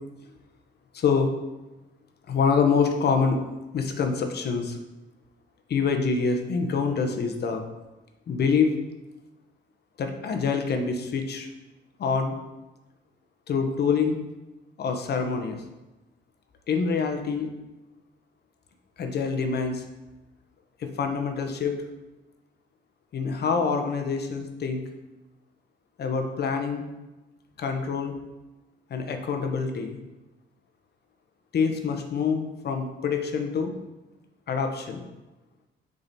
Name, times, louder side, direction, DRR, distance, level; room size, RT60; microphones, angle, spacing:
voice 1, 0.9-1.3 2.3-3.4 3.7-4.8 5.7-7.6 8.3-8.8 10.0-11.5 12.0-12.4 13.5-14.2 14.8-15.6 16.7-17.5 19.0-19.8 20.8-21.7 23.1-24.8 26.0-26.8 27.6-28.1 28.9-30.0 31.5-33.7 34.5-35.1, left 5 dB, 55° left, 5 dB, 0.9 m, -26 dB
7.0 x 3.9 x 4.1 m, 1.1 s
cardioid pair, 90°, 20 cm